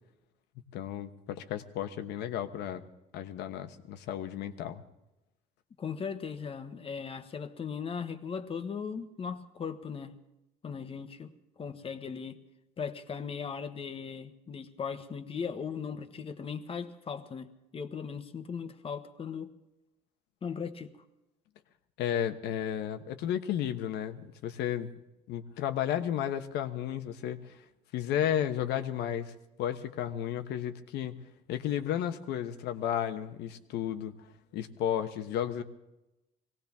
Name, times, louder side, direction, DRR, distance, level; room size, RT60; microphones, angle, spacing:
voice 1, 0.7-2.8 3.1-4.8 22.0-24.9 25.3-27.6 27.9-29.3 29.6-31.1 31.5-34.1 34.5-35.6, left 10 dB, 85° left, 1.2 m, -33 dB
voice 2, 5.8-10.1 10.6-12.4 12.8-19.5 20.4-20.9, left 6 dB, 35° left, 1.2 m, -38 dB
22.5 x 18.0 x 3.6 m
cardioid pair, 110°, 17 cm